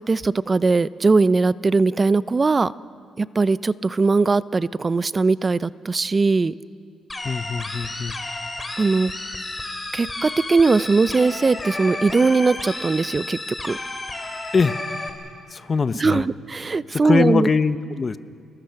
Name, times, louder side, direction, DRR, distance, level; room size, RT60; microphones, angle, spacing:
voice 1, 0.1-2.7 3.2-6.5 8.8-9.1 9.9-13.4 13.6-13.8 16.0-17.5, right 4 dB, 30° right, 18 dB, 0.5 m, -20 dB
sound 1, 7.1-15.1, left 2 dB, 20° left, 2.9 m, -32 dB
voice 2, 7.2-8.2 14.5-14.8 15.5-16.3 16.9-18.2, left 5 dB, 35° left, 13 dB, 0.8 m, -22 dB
30.0 x 20.0 x 5.8 m, 2.3 s
cardioid pair, 90°, 0 cm